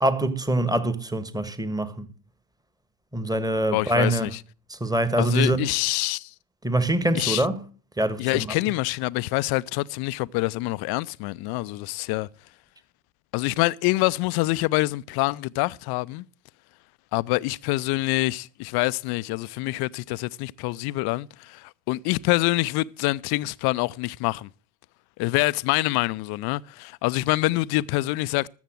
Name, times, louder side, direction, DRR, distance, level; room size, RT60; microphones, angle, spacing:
voice 1, 0.0-2.1 3.1-4.3 4.7-5.6 6.6-7.6 8.0-8.5, right 1 dB, 10° right, 1.4 m, -24 dB
voice 2, 3.7-4.4 5.2-6.3 7.1-7.4 8.2-12.3 13.3-16.2 17.1-24.5 25.2-28.5, left 21 dB, 50° left, 0.5 m, -26 dB
13.0 x 7.3 x 7.7 m
hypercardioid pair, 70°, 48 cm